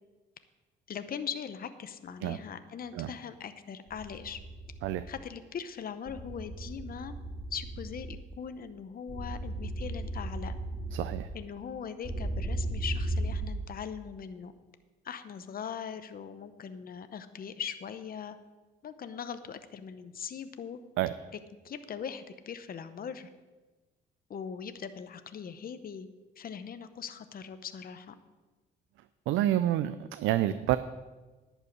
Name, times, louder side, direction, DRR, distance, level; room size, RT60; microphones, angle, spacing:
voice 1, 0.9-4.4 5.1-7.2 7.5-10.5 11.3-14.5 15.0-18.4 18.8-20.8 21.6-23.3 24.3-26.1 26.4-28.2, left 7 dB, 50° left, 10 dB, 0.8 m, -40 dB
Anger Progression, 3.9-5.0 6.1-8.1 9.1-11.1 12.0-13.3, right 1 dB, 20° right, 4.3 m, -36 dB
voice 2, 10.9-11.3 21.0-21.1 29.3-30.8, right 13 dB, 90° right, 13 dB, 0.4 m, -28 dB
11.0 x 5.5 x 8.6 m, 1.2 s
cardioid pair, 90°, 20 cm